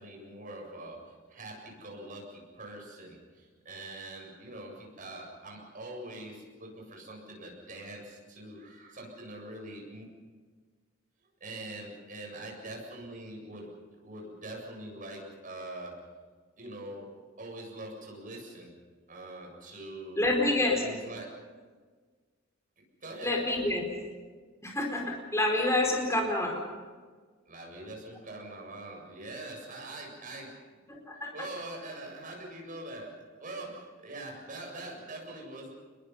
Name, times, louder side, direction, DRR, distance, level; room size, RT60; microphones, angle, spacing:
voice 1, 0.0-10.0 11.4-13.7 14.0-16.0 16.6-17.1 17.4-18.7 19.1-20.3 20.8-21.3 23.0-23.3 27.5-30.6 31.3-35.7, right 2 dB, 40° right, 0 dB, 7.6 m, -43 dB
voice 2, 20.1-20.8 23.2-23.8 24.6-26.6 30.9-31.3, left 2 dB, 15° left, 0 dB, 4.8 m, -28 dB
28.0 x 22.0 x 5.7 m, 1.5 s
head